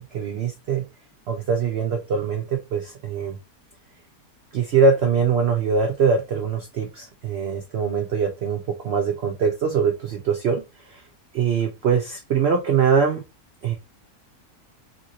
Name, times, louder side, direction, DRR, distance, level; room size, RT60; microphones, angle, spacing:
voice 1, 0.1-0.9 1.3-3.4 4.5-11.0 11.3-13.2 13.6-13.7, right 5 dB, 85° right, 3 dB, 0.5 m, -23 dB
2.9 x 2.6 x 2.8 m, 0.26 s
omnidirectional pair, 1.7 m